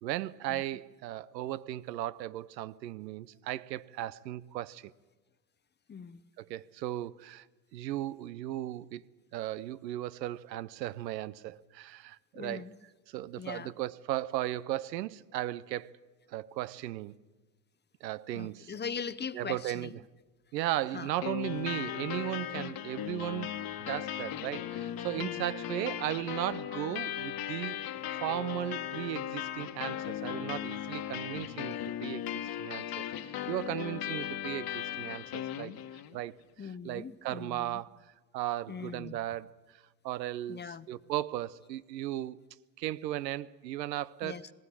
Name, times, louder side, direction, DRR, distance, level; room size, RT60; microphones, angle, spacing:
voice 1, 0.0-4.9 6.4-7.4 7.7-9.0 9.3-12.7 13.1-15.9 16.3-17.1 18.0-18.7 19.3-19.9 20.5-27.8 28.1-35.8 36.1-36.4 36.8-38.0 38.3-42.4 42.8-44.4, right 14 dB, 80° right, 0.9 m, -36 dB
voice 2, 5.9-6.2 12.3-12.7 13.4-13.7 18.3-20.0 20.9-21.1 22.5-22.7 25.2-25.7 36.6-37.8 38.7-39.2 40.5-40.9 44.2-44.5, left 6 dB, 20° left, 0.9 m, -41 dB
sound 1, 21.2-36.2, left 11 dB, 45° left, 1.6 m, -37 dB
19.5 x 17.5 x 9.9 m
hypercardioid pair, 80°, 50 cm